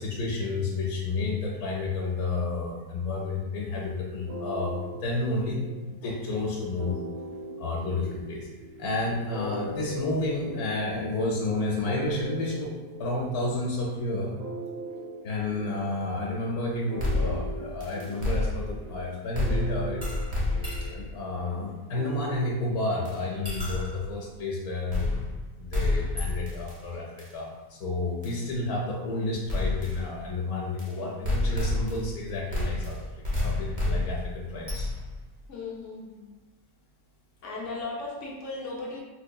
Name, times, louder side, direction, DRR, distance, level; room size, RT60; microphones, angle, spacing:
voice 1, 0.0-5.7 6.0-7.0 7.6-8.5 8.8-12.7 13.0-14.3 15.2-20.0 20.9-25.2 25.6-33.1 33.4-34.9, left 2 dB, 85° left, -3 dB, 1.1 m, -31 dB
sound 1, 4.3-23.1, right 1 dB, 90° right, 1.2 m, -40 dB
sound 2, 17.0-18.9 19.3-21.1 23.0-23.1 23.4-24.1 24.9-25.4 25.7-26.8 27.2-27.3 28.2-28.4 29.5-30.0 30.8-30.9 31.2-32.2 32.5-35.2, left 2 dB, 35° right, 0.7 m, -29 dB
voice 2, 35.5-36.3 37.4-39.0, left 3 dB, 65° left, -4 dB, 0.9 m, -36 dB
4.2 x 2.7 x 2.2 m, 1.2 s
omnidirectional pair, 1.5 m